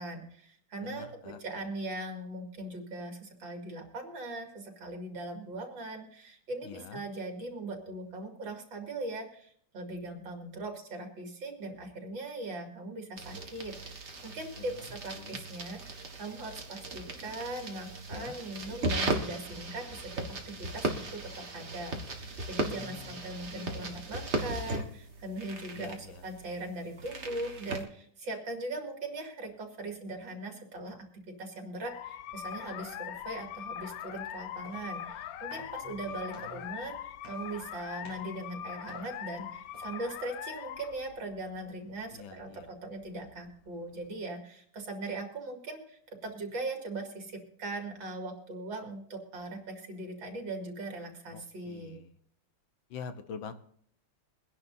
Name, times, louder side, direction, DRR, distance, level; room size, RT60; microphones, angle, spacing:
voice 1, 0.0-52.0, right 2 dB, 75° right, 3 dB, 3.1 m, -40 dB
voice 2, 0.8-1.4 6.7-7.0 15.1-15.4 18.1-18.4 22.7-23.2 23.5-24.0 25.7-26.2 35.9-36.7 42.1-42.7 51.3-51.4 51.7-52.0 52.9-53.5, left 6 dB, 85° left, 10 dB, 1.8 m, -45 dB
sound 1, 13.2-27.8, right 2 dB, 35° right, 1.8 m, -37 dB
sound 2, 31.8-44.1, left 10 dB, 70° left, 0.9 m, -42 dB
sound 3, 34.3-40.4, right 1 dB, 15° left, 6.1 m, -55 dB
23.5 x 10.5 x 2.7 m, 0.64 s
omnidirectional pair, 2.1 m